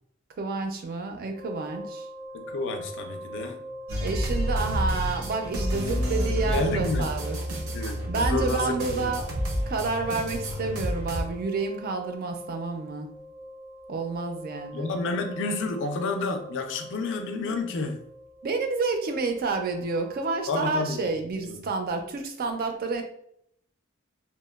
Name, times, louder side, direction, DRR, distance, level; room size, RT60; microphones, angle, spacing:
voice 1, 0.4-2.1 4.0-7.4 8.1-9.3 9.7-13.1 13.9-14.9 18.4-23.0, right 3 dB, 45° right, 5 dB, 0.4 m, -29 dB
sound 1, 1.3-20.4, equal, 15° left, 0.6 m, -43 dB
voice 2, 2.3-3.6 5.7-7.1 7.7-9.1 14.7-18.0 20.5-21.1 21.4-21.6, left 3 dB, 60° left, 6 dB, 0.4 m, -30 dB
sound 2, 3.9-11.2, equal, 85° right, 0.6 m, -29 dB
2.8 x 2.1 x 2.2 m, 0.71 s
head